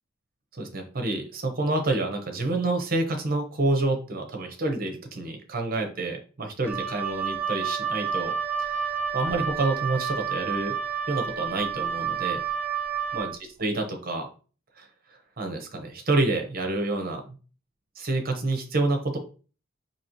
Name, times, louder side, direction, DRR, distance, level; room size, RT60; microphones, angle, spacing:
voice 1, 0.6-8.3 8.6-10.7 11.1-12.4 13.1-13.3 13.6-14.3 14.8-17.4 18.0-19.2, right 2 dB, 45° right, 3 dB, 0.8 m, -28 dB
Wind instrument woodwind instrument, 6.6-13.3, right 7 dB, 10° right, 0.4 m, -30 dB
4.1 x 2.9 x 3.0 m, 0.38 s
head